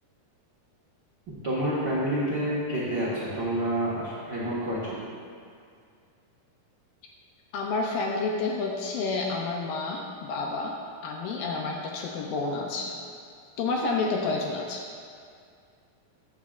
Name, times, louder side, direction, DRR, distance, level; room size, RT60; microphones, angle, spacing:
voice 1, 1.4-5.0, right 1 dB, 75° right, -8 dB, 1.0 m, -28 dB
voice 2, 7.5-13.0 13.6-14.9, left 3 dB, 75° left, 0 dB, 2.2 m, -30 dB
14.5 x 9.4 x 2.5 m, 2.3 s
omnidirectional pair, 4.7 m